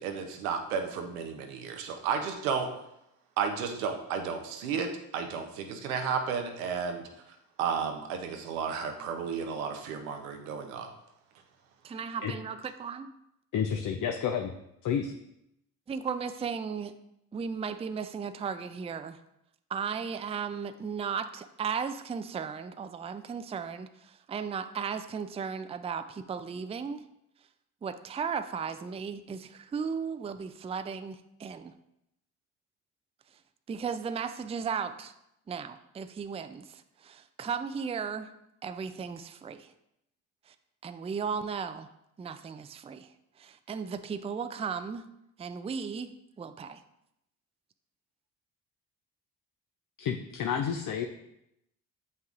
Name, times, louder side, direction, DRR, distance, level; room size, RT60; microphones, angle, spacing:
voice 1, 0.0-2.7 3.4-7.0 7.6-10.9, right 6 dB, 90° right, 5 dB, 0.8 m, -33 dB
voice 2, 11.8-13.1 15.9-16.9 17.3-19.2 19.7-27.0 27.8-31.7 33.7-35.1 35.5-38.3 38.6-39.7 40.5-40.6 40.8-41.9 42.2-43.1 43.4-45.1 45.4-46.1 46.4-46.8, right 6 dB, 15° right, 10 dB, 0.4 m, -35 dB
voice 3, 13.5-14.5 14.8-15.1 50.0-51.0, left 7 dB, 50° left, 4 dB, 0.6 m, -30 dB
7.8 x 5.5 x 2.5 m, 0.81 s
hypercardioid pair, 55°, 42 cm